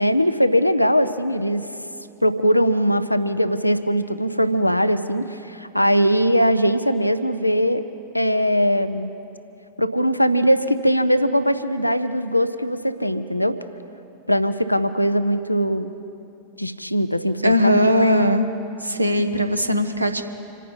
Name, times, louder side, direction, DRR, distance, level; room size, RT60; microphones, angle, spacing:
voice 1, 0.0-1.7 2.2-7.8 8.1-9.1 9.8-13.5 14.3-15.9 16.6-18.1, equal, 90° left, 11 dB, 0.6 m, -20 dB
voice 2, 17.4-18.5 18.8-20.2, left 1 dB, 85° right, 7 dB, 0.9 m, -19 dB
27.0 x 9.3 x 5.5 m, 2.9 s
figure-of-eight pair, 90°, 0 cm